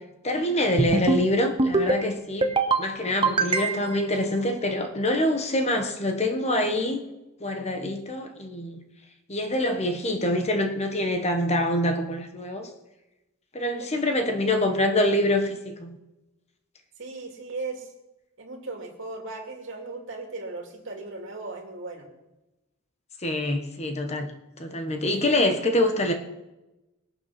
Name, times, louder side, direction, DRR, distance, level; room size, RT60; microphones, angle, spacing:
voice 1, 0.2-7.0 7.4-8.8 9.3-12.7 13.5-16.0 23.2-24.3 24.6-26.1, left 1 dB, 30° left, 1.2 m, -25 dB
sound 1, 0.8-1.2 1.6-2.0 2.4-2.8 3.2-4.0, right 3 dB, 25° right, 1.0 m, -23 dB
voice 2, 13.8-14.1 17.0-17.9 18.4-22.1 25.1-25.5, right 3 dB, 60° right, 2.6 m, -37 dB
21.0 x 7.0 x 5.9 m
head